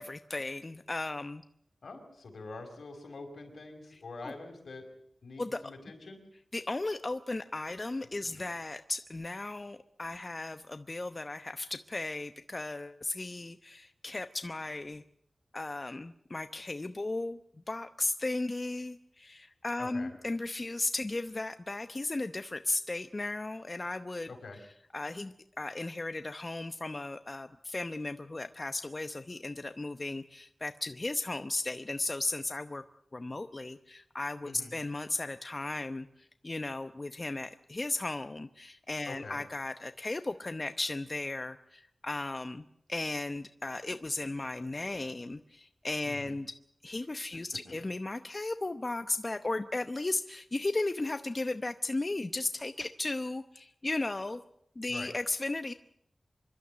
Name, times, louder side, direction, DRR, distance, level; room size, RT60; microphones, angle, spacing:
voice 1, 0.0-1.4 4.2-4.3 5.4-5.6 6.5-15.0 15.5-17.4 17.7-24.3 24.9-32.8 33.1-46.5 46.8-54.4 54.8-55.7, left 2 dB, 35° left, 10 dB, 0.8 m, -35 dB
voice 2, 1.8-4.9 5.2-6.2 8.2-8.4 19.8-20.1 24.3-24.6 34.4-34.7 39.0-39.4 46.0-46.4 47.7-47.8 54.9-55.1, left 3 dB, 80° left, 4 dB, 5.2 m, -45 dB
26.0 x 12.5 x 9.7 m, 0.73 s
wide cardioid pair, 75°, 0 cm